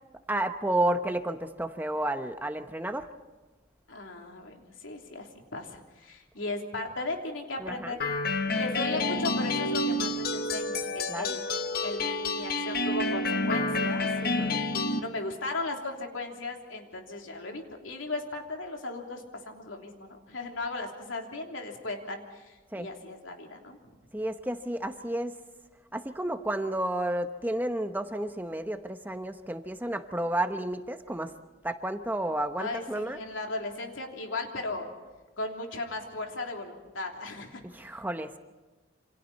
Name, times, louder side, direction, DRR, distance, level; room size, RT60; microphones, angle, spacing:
voice 1, 0.3-3.1 7.6-8.0 11.1-11.3 14.2-14.6 22.7-22.9 24.1-25.4 25.9-31.3 31.6-33.2 37.6-38.4, right 1 dB, 10° right, 7 dB, 0.9 m, -31 dB
voice 2, 3.9-8.0 8.3-11.4 11.8-14.6 15.0-24.0 32.6-34.9 35.4-37.6, left 2 dB, 85° left, 2 dB, 3.3 m, -37 dB
sound 1, 8.0-15.0, left 2 dB, 50° left, 1.2 m, -29 dB
28.5 x 26.5 x 4.2 m, 1.2 s
head